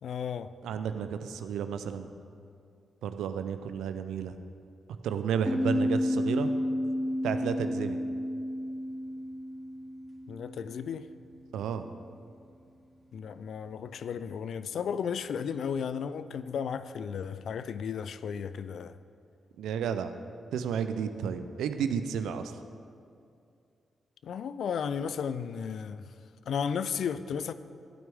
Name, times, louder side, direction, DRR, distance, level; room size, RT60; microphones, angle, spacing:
voice 1, 0.0-0.5 10.3-11.1 13.1-19.0 24.2-26.1 26.5-27.5, left 7 dB, 70° left, 0.3 m, -34 dB
voice 2, 0.6-2.1 3.0-4.3 5.0-6.5 7.2-8.0 11.5-11.9 19.6-20.1 20.5-22.5, right 7 dB, 80° right, 0.5 m, -32 dB
sound 1, 5.5-10.8, left 1 dB, 10° left, 2.8 m, -31 dB
12.5 x 9.0 x 3.5 m
hypercardioid pair, 40°, 0 cm